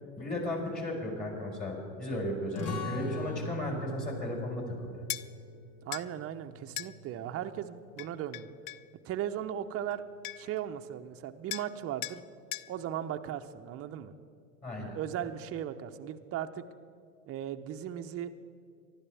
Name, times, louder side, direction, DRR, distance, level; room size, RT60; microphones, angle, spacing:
voice 1, 0.2-5.0 14.6-15.0, left 1 dB, 20° left, 0 dB, 4.7 m, -35 dB
sound 1, 2.5-7.7, left 1 dB, 55° left, 2.2 m, -41 dB
sound 2, 5.1-5.3 5.9-6.1 6.8-6.9 8.0-8.9 9.9-10.0 10.2-10.6 11.5-11.7 12.0-12.2 12.5-12.7, left 14 dB, 70° left, 0.5 m, -38 dB
voice 2, 5.8-8.5 9.0-10.0 10.4-12.2 12.7-14.1 14.8-16.6 17.3-18.3, right 10 dB, 35° right, 7 dB, 0.8 m, -37 dB
25.0 x 12.0 x 3.5 m, 2.2 s
hypercardioid pair, 85°, 42 cm